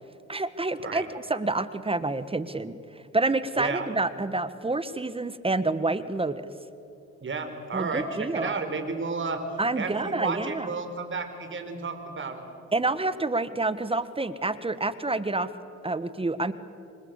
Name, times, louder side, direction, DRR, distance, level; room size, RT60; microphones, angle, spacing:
voice 1, 0.3-6.5 7.7-8.6 9.6-10.7 12.7-15.5 15.8-16.5, right 2 dB, 20° right, 13 dB, 1.4 m, -28 dB
voice 2, 7.2-9.4 9.8-12.4, right 4 dB, 40° right, 8 dB, 4.3 m, -32 dB
28.0 x 25.0 x 8.2 m, 2.5 s
cardioid pair, 90°, 30 cm